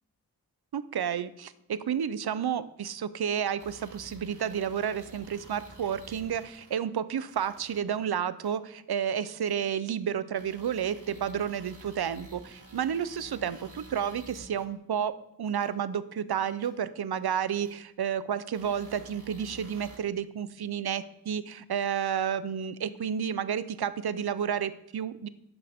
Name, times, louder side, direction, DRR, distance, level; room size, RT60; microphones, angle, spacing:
voice 1, 0.7-15.1 15.4-25.3, right 8 dB, 75° right, 15 dB, 0.7 m, -31 dB
sound 1, 3.6-6.8 7.3-7.8 8.4-8.5 9.5-9.6 10.3-14.6 15.6-15.7 16.6-16.7 17.6-17.7 18.5-20.0, right 2 dB, 55° right, 3.0 m, -50 dB
11.5 x 8.2 x 3.6 m, 0.83 s
wide cardioid pair, 70°, 39 cm